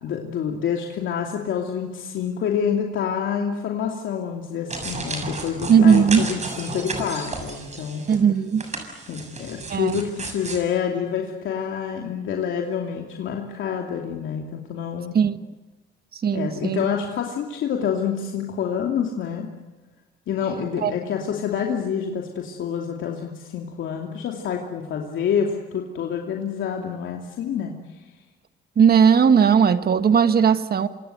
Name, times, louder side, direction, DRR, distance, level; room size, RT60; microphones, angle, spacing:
voice 1, 0.0-8.0 9.1-15.2 16.3-19.5 20.3-27.7, left 7 dB, 75° left, 1 dB, 2.8 m, -27 dB
sound 1, 4.7-8.2 8.5-10.6, right 3 dB, 35° right, 6.9 m, -33 dB
voice 2, 5.7-6.2 8.1-8.7 9.7-9.9 15.1-15.4 16.1-16.9 20.8-20.9 28.8-30.9, right 7 dB, 50° right, 10 dB, 1.6 m, -17 dB
27.0 x 26.5 x 8.0 m, 1.2 s
cardioid pair, 90°, 20 cm